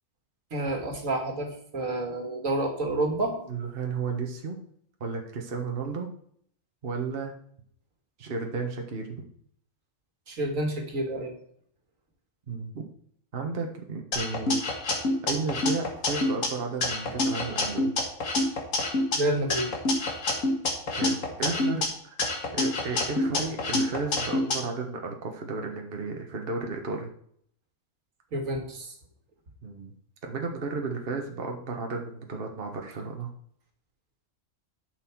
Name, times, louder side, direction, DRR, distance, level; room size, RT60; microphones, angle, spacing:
voice 1, 0.5-3.4 10.3-11.3 19.1-19.7 28.3-28.9, right 1 dB, 80° right, 4 dB, 2.2 m, -29 dB
voice 2, 3.5-4.6 5.0-6.1 6.8-7.3 8.2-9.2 12.5-12.8 13.3-14.6 15.2-17.9 21.0-22.2 22.5-27.1 29.6-29.9 30.2-33.3, right 4 dB, 45° right, 2 dB, 1.4 m, -33 dB
sound 1, 14.1-16.5 16.8-19.2 19.5-21.9 22.2-24.6, left 2 dB, 80° left, 2.1 m, -27 dB
11.0 x 6.3 x 4.6 m, 0.64 s
omnidirectional pair, 1.4 m